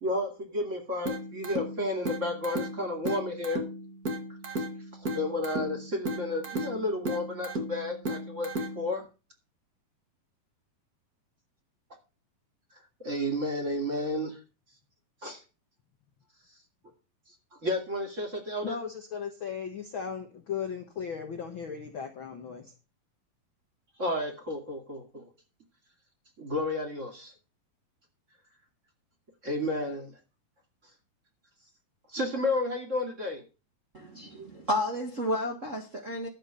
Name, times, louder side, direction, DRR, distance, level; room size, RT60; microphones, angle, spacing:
voice 1, 0.0-3.6 5.0-9.0 13.0-14.4 15.2-15.4 17.6-18.8 24.0-25.3 26.4-27.3 29.4-30.2 32.1-33.4, left 1 dB, 25° right, 2.3 m, -32 dB
sound 1, 1.1-9.1, equal, 40° right, 1.3 m, -35 dB
voice 2, 18.6-22.7, left 7 dB, 85° left, 1.1 m, -37 dB
voice 3, 33.9-36.3, left 1 dB, 70° right, 0.7 m, -31 dB
12.0 x 6.6 x 6.9 m
omnidirectional pair, 4.3 m